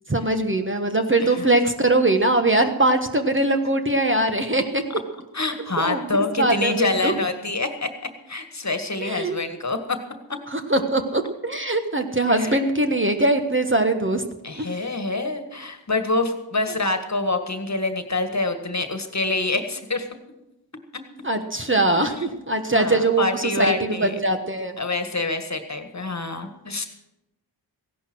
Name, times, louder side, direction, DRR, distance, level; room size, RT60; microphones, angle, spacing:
voice 1, 0.1-4.8 5.8-6.0 6.4-7.1 9.0-9.4 10.5-14.2 14.5-14.7 21.2-24.8, right 2 dB, 25° right, 6 dB, 1.3 m, -21 dB
voice 2, 5.3-7.9 8.3-10.0 12.3-12.6 14.4-20.1 21.9-22.5 22.7-24.2 24.8-26.9, left 2 dB, 35° left, 7 dB, 1.8 m, -26 dB
16.0 x 11.0 x 6.2 m, 0.93 s
cardioid pair, 60°, 46 cm